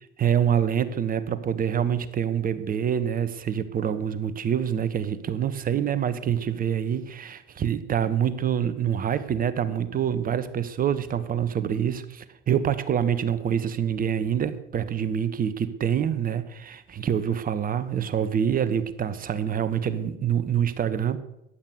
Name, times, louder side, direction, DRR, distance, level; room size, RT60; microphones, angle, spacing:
voice 1, 0.2-21.2, right 8 dB, 30° right, 13 dB, 1.3 m, -26 dB
14.5 x 11.5 x 6.6 m, 0.84 s
figure-of-eight pair, 70°, 29 cm